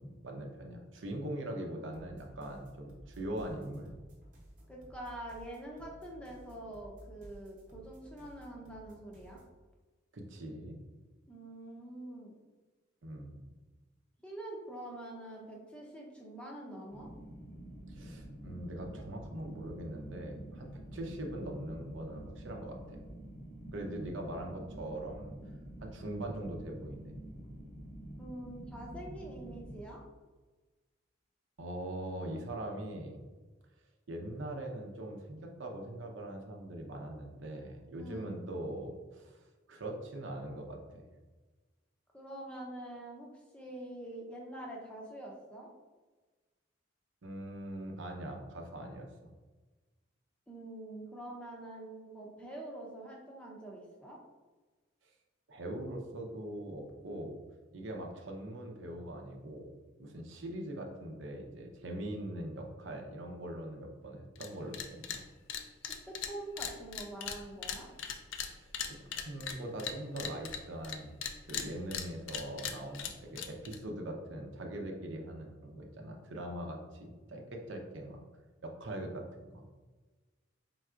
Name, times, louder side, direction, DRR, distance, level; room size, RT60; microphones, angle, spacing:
voice 1, 0.0-3.9 10.1-10.8 13.0-13.5 17.9-23.0 23.7-25.3 25.8-27.2 31.6-33.2 34.1-41.0 47.2-49.3 55.0-55.1 55.5-57.4 57.7-59.7 60.0-65.2 68.5-71.1 71.5-78.2 78.6-79.6, right 1 dB, 75° right, 2 dB, 0.7 m, -42 dB
sound 1, 1.9-9.6, right 1 dB, 40° right, 1.0 m, -55 dB
voice 2, 4.7-9.4 11.3-12.3 14.2-17.1 28.2-30.0 38.0-38.4 42.1-43.3 43.5-45.7 50.5-54.2 65.8-67.9, right 1 dB, 5° left, -2 dB, 0.6 m, -45 dB
sound 2, 16.9-29.8, right 1 dB, 55° left, 0.9 m, -48 dB
sound 3, 64.3-64.5 64.7-65.2 65.5-71.0 71.2-73.8, left 7 dB, 75° left, 0.4 m, -39 dB
4.4 x 3.9 x 2.5 m, 1.3 s
head